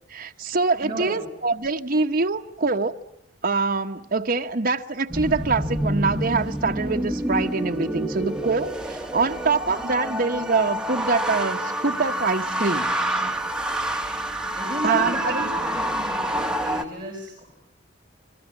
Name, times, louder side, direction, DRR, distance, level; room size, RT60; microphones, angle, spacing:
voice 1, 0.1-2.9 3.4-12.9 14.8-15.5, right 4 dB, 55° right, 1.1 m, -24 dB
voice 2, 0.8-1.2 14.6-15.5 15.7-17.4, right 1 dB, 25° right, 6.4 m, -33 dB
sound 1, 5.1-16.8, right 1 dB, 5° right, 1.9 m, -27 dB
28.5 x 22.0 x 9.5 m
head